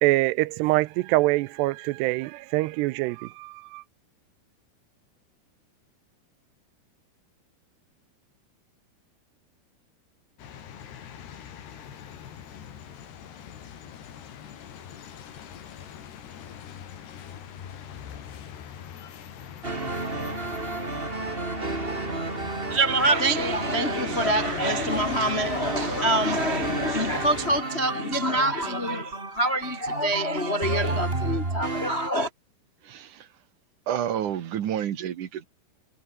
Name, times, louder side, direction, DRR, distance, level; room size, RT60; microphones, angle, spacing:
voice 1, 0.0-3.8, right 20 dB, 85° right, 2.7 m, -24 dB
sound 1, 10.4-27.6, left 9 dB, 75° left, 5.0 m, -42 dB
sound 2, 19.6-32.1, right 2 dB, 15° right, 2.6 m, -32 dB
voice 2, 22.7-32.3, right 1 dB, 45° left, 0.7 m, -26 dB
voice 3, 32.8-33.3 33.9-35.4, right 10 dB, 60° right, 2.7 m, -29 dB
omnidirectional pair, 4.8 m